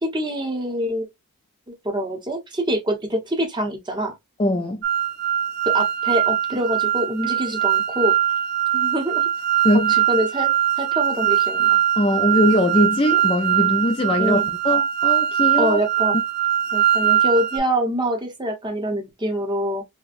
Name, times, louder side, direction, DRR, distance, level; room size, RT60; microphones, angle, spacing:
voice 1, 0.0-1.1 1.8-4.1 5.6-8.1 8.7-9.3 9.7-10.5 10.8-11.8 14.2-14.5 15.6-16.2 16.7-19.8, equal, 20° right, 0.8 m, -25 dB
voice 2, 4.4-4.8 9.6-9.9 12.0-15.8, left 1 dB, 25° left, 0.3 m, -21 dB
sound 1, 4.8-17.6, right 10 dB, 45° right, 0.4 m, -21 dB
4.2 x 2.2 x 2.4 m
head